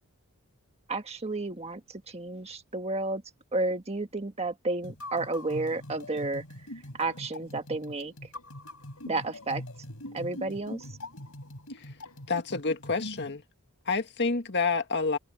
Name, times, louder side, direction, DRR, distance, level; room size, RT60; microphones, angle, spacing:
voice 1, 0.9-1.8 2.1-3.2 3.5-6.4 7.0-8.1 9.1-9.6 10.1-10.8, right 2 dB, 30° right, 1.6 m, -31 dB
sound 1, 4.8-13.3, left 1 dB, 70° left, 5.7 m, -42 dB
sound 2, 6.9-12.7, left 2 dB, 90° left, 6.9 m, -60 dB
voice 2, 12.3-13.4 13.9-15.2, left 4 dB, 50° left, 1.9 m, -28 dB
head